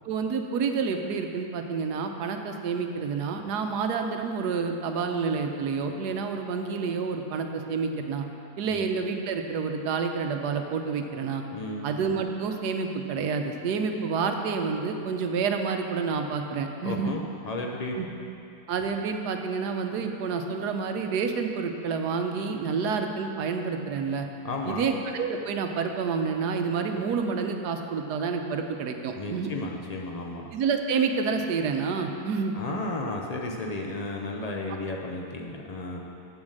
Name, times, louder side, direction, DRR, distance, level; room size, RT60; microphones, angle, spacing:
voice 1, 0.0-8.3 8.6-11.4 11.8-17.1 18.0-18.1 18.7-24.3 24.7-29.5 30.5-32.5, right 5 dB, 85° right, 5 dB, 1.3 m, -29 dB
voice 2, 11.5-11.9 16.8-18.0 24.4-24.9 29.2-30.4 32.5-36.0, left 2 dB, 70° left, 0 dB, 0.3 m, -33 dB
7.9 x 7.2 x 6.5 m, 2.8 s
omnidirectional pair, 1.7 m